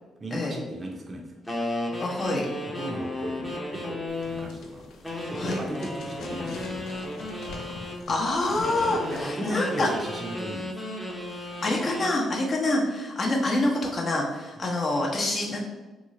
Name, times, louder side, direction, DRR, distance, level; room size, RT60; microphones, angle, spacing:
voice 1, 0.2-1.4 2.8-4.9 5.3-6.8 9.1-10.8 11.1-11.6, right 1 dB, 35° right, 0 dB, 0.6 m, -37 dB
sound 1, 1.5-4.5 5.0-8.0 8.6-12.1, left 1 dB, 15° left, 0.7 m, -34 dB
voice 2, 2.0-2.5 5.3-5.6 8.1-9.9 11.6-15.6, left 2 dB, 45° left, -1 dB, 0.8 m, -26 dB
sound 2, 4.1-9.3, left 3 dB, 75° left, 0.5 m, -42 dB
3.0 x 2.0 x 3.7 m, 1.2 s
supercardioid pair, 65°, 0 cm